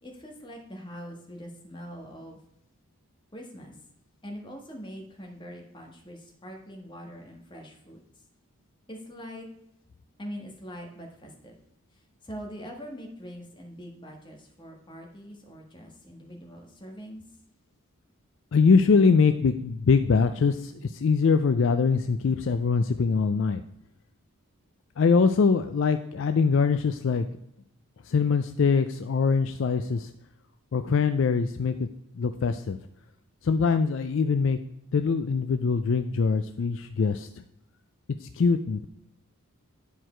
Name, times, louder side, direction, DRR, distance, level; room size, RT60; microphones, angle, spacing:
voice 1, 0.0-2.4 3.3-3.7 4.2-8.0 8.9-9.5 10.2-11.6 11.9-17.2, equal, 20° left, 1 dB, 1.4 m, -43 dB
voice 2, 18.5-23.6 25.0-27.3 28.1-30.1 30.7-31.9 32.2-32.8 33.4-34.6 34.9-37.4 38.2-38.9, left 5 dB, 60° left, 9 dB, 0.4 m, -23 dB
10.0 x 4.7 x 4.4 m, 0.80 s
head